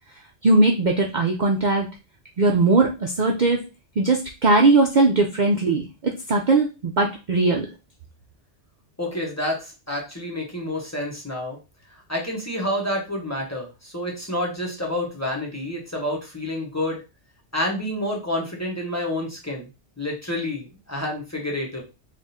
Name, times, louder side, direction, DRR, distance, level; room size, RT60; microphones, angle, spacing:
voice 1, 0.4-1.9 2.4-3.6 4.0-7.7, right 3 dB, 50° right, 1 dB, 0.6 m, -19 dB
voice 2, 9.0-11.6 12.1-17.0 17.5-19.6 20.0-21.8, left 1 dB, 15° left, -2 dB, 1.0 m, -28 dB
3.6 x 2.5 x 4.1 m, 0.29 s
omnidirectional pair, 1.2 m